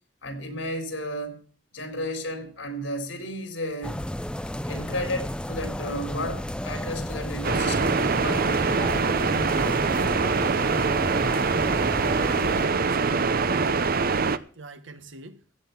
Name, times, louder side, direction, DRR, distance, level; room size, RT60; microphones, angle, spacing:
voice 1, 0.2-1.4 1.7-4.0 4.6-8.7, left 1 dB, 85° left, 3.9 m, -33 dB
sound 1, 3.8-12.7, left 1 dB, 5° left, 0.5 m, -32 dB
sound 2, 7.4-14.4, right 4 dB, 50° right, 0.7 m, -24 dB
voice 2, 12.4-13.9 14.5-15.4, right 2 dB, 80° right, 1.6 m, -41 dB
16.0 x 9.5 x 5.9 m
head